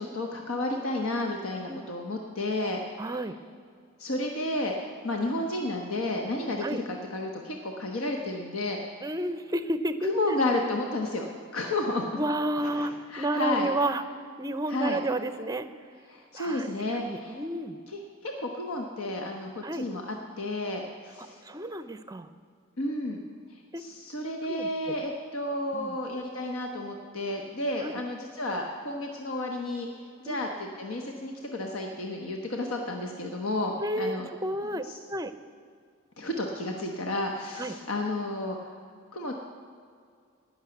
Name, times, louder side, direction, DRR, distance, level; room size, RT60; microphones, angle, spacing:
voice 1, 0.0-2.8 4.0-8.8 10.0-11.3 11.5-12.2 12.6-13.7 14.7-15.0 16.1-17.4 17.9-21.4 22.8-23.2 23.8-29.9 30.2-34.3 34.8-35.0 36.2-38.6 39.1-39.3, left 2 dB, 85° left, 2 dB, 1.2 m, -32 dB
voice 2, 3.0-3.3 6.6-6.8 9.0-10.1 12.2-14.0 14.4-15.7 16.3-17.8 19.6-19.9 21.2-22.3 23.7-23.8 24.5-24.9 25.7-26.0 27.8-28.0 30.3-30.5 33.8-34.8 35.1-35.3 37.6-37.7, right 1 dB, 15° right, 12 dB, 0.6 m, -31 dB
19.0 x 6.6 x 7.9 m, 2.2 s
head